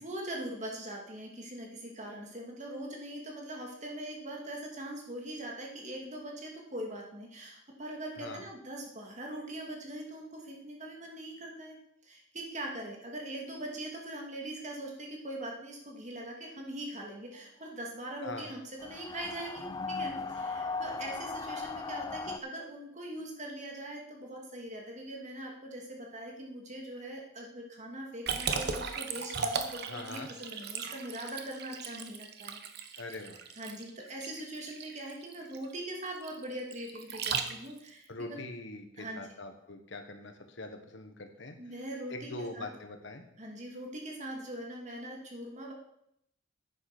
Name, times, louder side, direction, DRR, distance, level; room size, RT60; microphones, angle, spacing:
voice 1, 0.0-11.8 12.0-33.1 33.6-38.4 39.0-39.3 41.6-42.7 43.4-45.7, right 1 dB, 35° right, 0 dB, 2.4 m, -42 dB
sound 1, 18.8-22.4, left 4 dB, 20° left, 0.3 m, -37 dB
Liquid, 28.3-37.9, right 5 dB, 55° right, 1.0 m, -37 dB
voice 2, 29.9-30.3 33.0-33.4 38.1-41.6 42.1-43.2, left 2 dB, 65° left, 6 dB, 1.4 m, -42 dB
9.7 x 7.8 x 6.1 m, 0.76 s
head